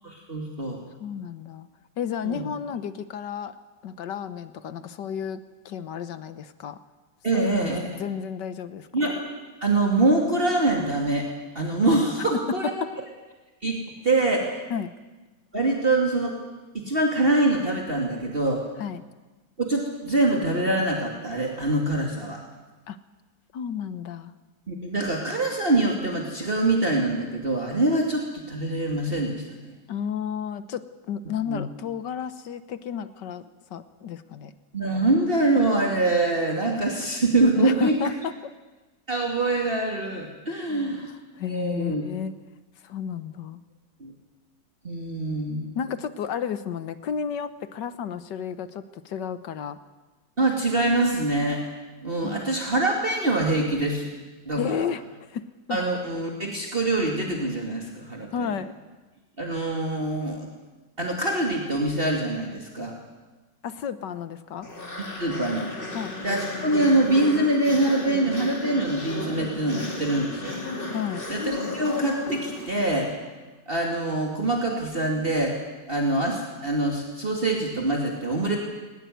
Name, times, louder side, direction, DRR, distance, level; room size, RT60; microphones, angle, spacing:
voice 1, 0.0-0.8 2.2-2.4 7.2-7.9 8.9-9.2 9.6-11.3 11.5-12.8 13.6-13.8 14.0-14.6 15.5-16.4 16.7-18.6 19.6-22.4 24.7-29.4 31.4-31.6 34.7-37.9 39.1-41.1 41.5-42.0 44.0-44.1 44.8-45.8 50.4-51.6 52.0-54.1 54.5-54.9 55.7-58.5 59.4-60.5 61.0-63.0 65.2-65.7 66.2-70.6 71.3-73.1 73.7-75.6 75.9-78.6, right 2 dB, 30° right, 0 dB, 2.9 m, -24 dB
voice 2, 1.0-1.7 2.0-3.6 3.8-5.4 5.7-6.8 7.3-8.9 12.5-12.9 14.7-14.9 18.8-19.0 22.9-23.0 23.5-24.3 29.9-33.4 33.7-34.5 37.6-38.5 40.7-42.3 42.8-43.6 45.7-49.8 52.2-52.4 54.6-55.0 55.3-55.8 58.3-58.7 63.6-64.7 65.9-66.1 70.9-71.2, left 7 dB, 75° left, 13 dB, 1.7 m, -32 dB
sound 1, 64.6-73.1, left 2 dB, 30° left, 3.0 m, -34 dB
21.0 x 19.5 x 9.3 m, 1.2 s
omnidirectional pair, 1.9 m